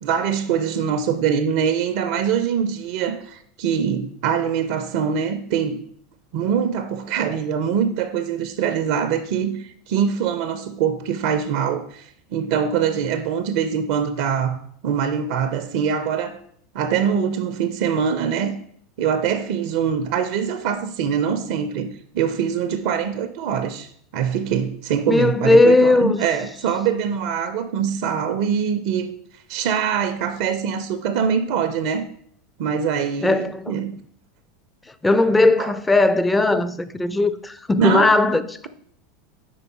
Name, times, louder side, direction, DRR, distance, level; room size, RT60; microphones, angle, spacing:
voice 1, 0.0-5.8 6.3-14.6 14.8-16.4 16.7-18.6 19.0-29.1 29.5-32.0 32.6-33.9 35.6-35.7 37.8-38.1, right 7 dB, 60° right, 0.4 m, -23 dB
voice 2, 25.1-26.2 33.2-33.8 35.0-38.7, left 2 dB, 10° left, 0.4 m, -18 dB
5.1 x 4.6 x 4.3 m
figure-of-eight pair, 80°, 0 cm